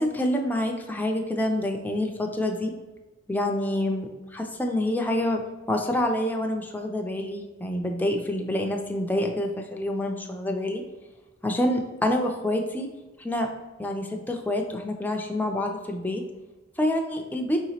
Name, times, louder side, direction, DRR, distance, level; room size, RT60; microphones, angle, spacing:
voice 1, 0.0-2.7 3.3-5.4 5.7-10.8 11.4-12.9 13.2-13.5 13.8-16.2 16.8-17.6, left 1 dB, 10° left, 2 dB, 0.4 m, -27 dB
4.7 x 2.9 x 2.8 m, 1.2 s
head